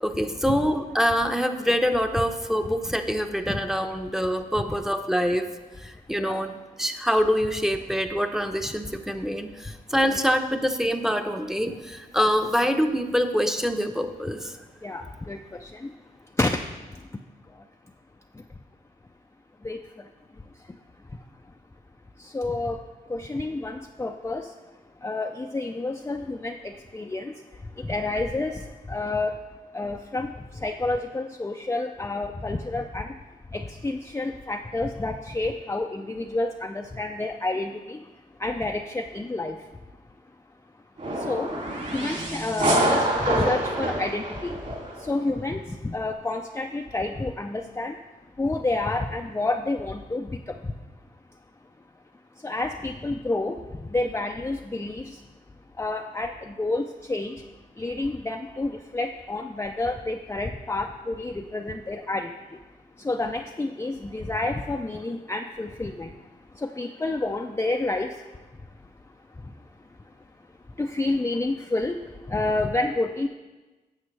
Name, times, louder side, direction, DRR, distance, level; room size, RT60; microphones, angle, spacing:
voice 1, 0.0-5.5 5.8-14.5, equal, 5° right, 7 dB, 0.8 m, -25 dB
voice 2, 5.9-6.5 10.1-10.2 14.8-16.0 16.3-16.6 16.9-17.2 17.5-17.7 18.3-18.4 19.6-20.8 21.1-21.2 22.2-22.8 23.1-24.6 25.0-29.4 29.7-33.2 33.5-38.1 38.4-39.7 41.1-41.5 41.9-48.0 48.4-50.8 52.4-55.2 55.7-57.5 57.8-62.6 63.0-68.3 68.8-68.9 69.3-69.5 69.8-69.9 70.8-73.3, left 2 dB, 15° left, 3 dB, 0.5 m, -30 dB
sound 1, 41.0-45.0, right 1 dB, 45° right, 2.8 m, -26 dB
9.8 x 7.3 x 3.3 m, 1.2 s
supercardioid pair, 50°, 17 cm